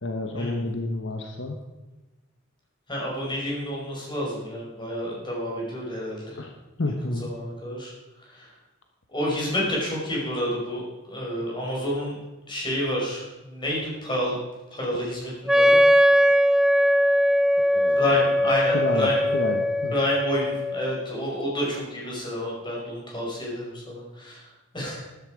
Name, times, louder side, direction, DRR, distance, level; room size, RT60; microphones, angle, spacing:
voice 1, 0.0-1.6 6.4-6.5 6.8-7.3 17.7-18.1 18.7-19.9, left 2 dB, 70° left, 4 dB, 1.2 m, -29 dB
voice 2, 2.9-6.4 7.2-7.9 8.3-8.5 9.1-12.1 12.5-14.3 14.7-15.8 17.9-19.2 19.9-24.5 24.7-25.1, equal, 25° left, -3 dB, 5.3 m, -29 dB
Wind instrument woodwind instrument, 15.5-21.1, equal, ahead, 0.4 m, -20 dB
13.0 x 11.5 x 5.1 m, 1.1 s
head